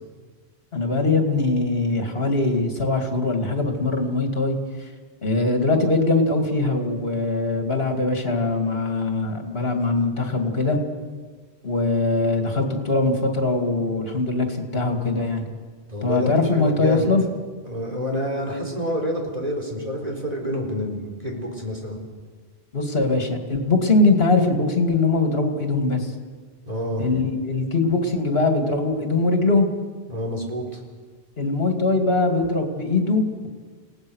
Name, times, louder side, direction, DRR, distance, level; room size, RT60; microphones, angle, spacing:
voice 1, 0.7-4.6 5.2-10.8 11.6-15.4 16.0-17.2 22.7-26.1 27.0-29.7 31.4-33.5, left 3 dB, 60° left, 4 dB, 2.7 m, -22 dB
voice 2, 15.9-17.1 17.6-22.0 26.7-27.1 30.1-30.8, equal, 35° right, 0 dB, 4.3 m, -28 dB
29.0 x 18.0 x 6.5 m, 1.5 s
omnidirectional pair, 1.1 m